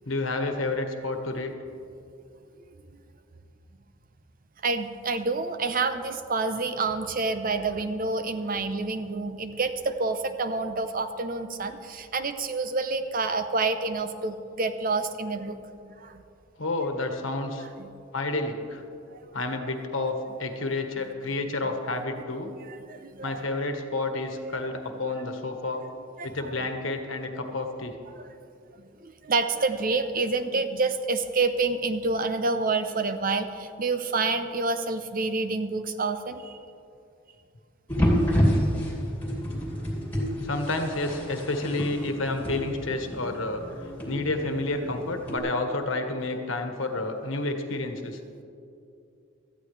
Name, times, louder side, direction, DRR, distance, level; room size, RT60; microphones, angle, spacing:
voice 1, 0.0-1.5 16.6-17.7 18.1-18.8 19.3-20.1 20.4-22.5 23.2-25.8 26.2-28.0 40.4-43.6 44.0-48.2, left 2 dB, 80° left, 5 dB, 1.4 m, -30 dB
voice 2, 4.6-15.6 15.8-16.2 17.8-17.9 19.1-19.3 22.6-23.4 24.4-24.6 26.2-26.5 28.2-28.3 29.0-36.5, right 3 dB, 45° right, 9 dB, 0.8 m, -28 dB
sound 1, 37.9-45.4, equal, 10° left, 2.6 m, -29 dB
18.0 x 13.5 x 3.3 m, 2.6 s
head